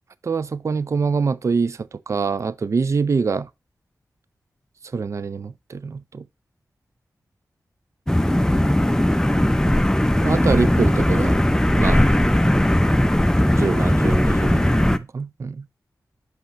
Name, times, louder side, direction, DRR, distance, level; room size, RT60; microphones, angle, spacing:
voice 1, 0.2-3.5 4.9-6.2 10.2-11.4 11.8-12.1 13.5-15.6, right 5 dB, 50° right, 0.4 m, -25 dB
sound 1, 8.1-15.0, left 1 dB, 10° left, 0.6 m, -18 dB
6.1 x 5.5 x 2.8 m
cardioid pair, 45°, 7 cm